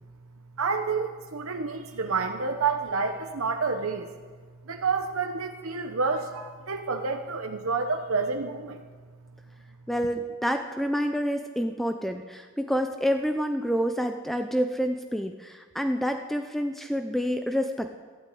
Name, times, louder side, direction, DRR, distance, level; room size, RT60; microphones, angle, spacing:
voice 1, 0.6-4.1 4.7-8.8, right 4 dB, 80° right, 4 dB, 1.0 m, -29 dB
voice 2, 9.9-18.0, equal, ahead, 6 dB, 0.5 m, -28 dB
13.0 x 12.0 x 8.4 m, 1.5 s
head